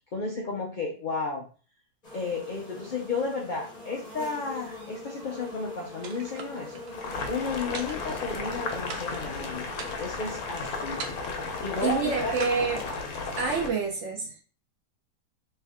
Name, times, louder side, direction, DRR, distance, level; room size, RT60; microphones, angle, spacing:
voice 1, 0.1-1.5 2.1-6.8 7.3-9.7 10.0-11.0 11.6-12.5, left 4 dB, 90° left, -1 dB, 0.4 m, -33 dB
sound 1, 2.0-12.6, left 2 dB, 35° left, 0.7 m, -44 dB
sound 2, 6.0-6.9 7.7-8.5 8.9-9.3 9.7-10.3 11.0-11.5 12.4-13.3, right 5 dB, 85° right, 1.3 m, -42 dB
Boiling, 6.9-13.7, left 4 dB, 65° left, 1.0 m, -34 dB
voice 2, 11.8-12.8 13.4-14.4, right 5 dB, 60° right, 1 dB, 0.8 m, -28 dB
3.3 x 2.7 x 3.5 m, 0.39 s
omnidirectional pair, 1.8 m